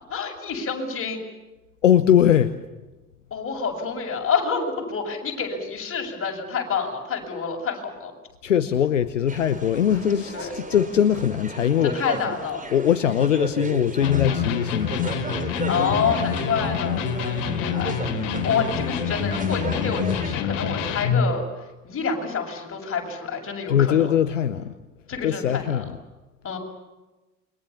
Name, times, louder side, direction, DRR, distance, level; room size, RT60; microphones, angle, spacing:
voice 1, 0.1-1.2 3.3-8.1 10.3-10.5 11.8-12.6 15.4-21.4 21.8-24.1 25.1-25.8 26.4-26.6, left 5 dB, 35° left, 1 dB, 7.3 m, -28 dB
voice 2, 1.8-2.5 8.4-11.9 12.7-15.1 23.7-24.7 25.2-26.0, left 9 dB, 80° left, 12 dB, 1.0 m, -21 dB
sound 1, 9.3-20.3, right 3 dB, 20° right, 4.5 m, -36 dB
Electric guitar, 14.0-21.3, left 7 dB, 60° left, 3.3 m, -26 dB
29.0 x 23.5 x 7.2 m, 1.1 s
figure-of-eight pair, 60°, 37 cm